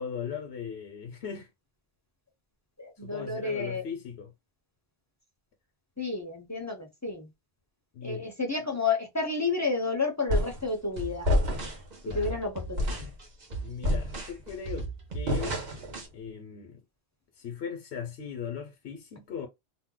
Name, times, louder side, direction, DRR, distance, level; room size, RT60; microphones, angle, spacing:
voice 1, 0.0-1.5 3.0-4.3 7.9-8.3 12.0-12.4 13.6-15.6 16.1-16.8 17.3-19.5, left 7 dB, 75° left, 0.9 m, -38 dB
voice 2, 2.8-3.9 6.0-7.3 8.0-11.3 12.0-13.0, left 4 dB, 20° left, 0.6 m, -31 dB
sound 1, 10.3-10.7 11.2-11.9 12.2-12.4 12.8-13.1 13.8-14.5 15.3-16.0, left 1 dB, 85° right, 1.4 m, -28 dB
sound 2, 11.0-16.1, right 4 dB, 45° right, 0.9 m, -38 dB
2.7 x 2.1 x 3.7 m
omnidirectional pair, 1.1 m